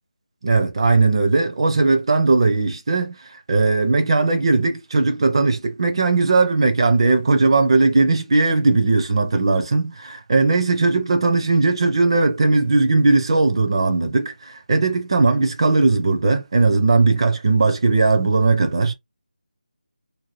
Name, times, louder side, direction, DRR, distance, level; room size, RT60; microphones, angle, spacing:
voice 1, 0.4-18.9, right 3 dB, 40° right, 0.6 m, -18 dB
2.7 x 2.5 x 3.0 m
figure-of-eight pair, 170°, 5 cm